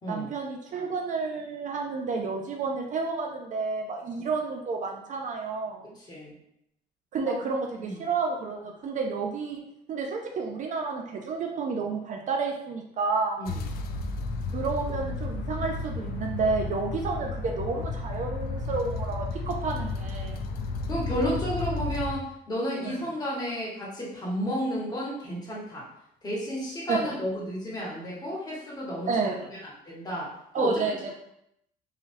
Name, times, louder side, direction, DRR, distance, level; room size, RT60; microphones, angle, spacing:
voice 1, 0.1-5.9 7.1-9.6 9.9-13.4 14.5-20.4 22.8-23.0 26.9-27.0 29.1-29.5 30.5-31.1, right 4 dB, 50° right, 2 dB, 0.5 m, -30 dB
voice 2, 5.9-6.3 7.2-7.3 7.8-7.9 13.4-13.7 20.9-25.9 26.2-29.1 29.6-30.7, equal, 25° left, -6 dB, 1.5 m, -32 dB
sound 1, 13.5-22.1, left 3 dB, 65° left, 0.4 m, -33 dB
3.9 x 3.1 x 2.6 m, 0.78 s
cardioid pair, 110°, 17 cm